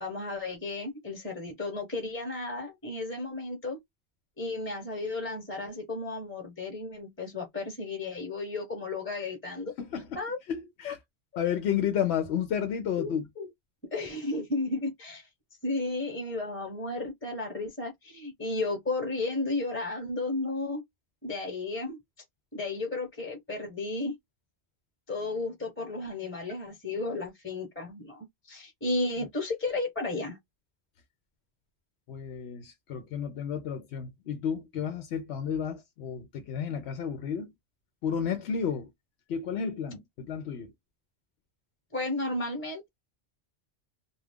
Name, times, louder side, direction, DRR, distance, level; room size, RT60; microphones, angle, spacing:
voice 1, 0.0-3.8 4.4-9.7 10.1-10.4 10.8-10.9 11.3-11.4 13.0-13.1 13.4-13.5 13.9-15.3 15.6-20.8 21.2-22.0 22.5-24.1 25.1-30.4 41.9-42.9, left 2 dB, 15° left, 0.8 m, -33 dB
voice 2, 10.5-11.0 11.4-13.3 32.1-37.5 38.0-38.9 39.3-40.7, left 8 dB, 90° left, 0.9 m, -32 dB
2.4 x 2.2 x 3.4 m
omnidirectional pair, 1.1 m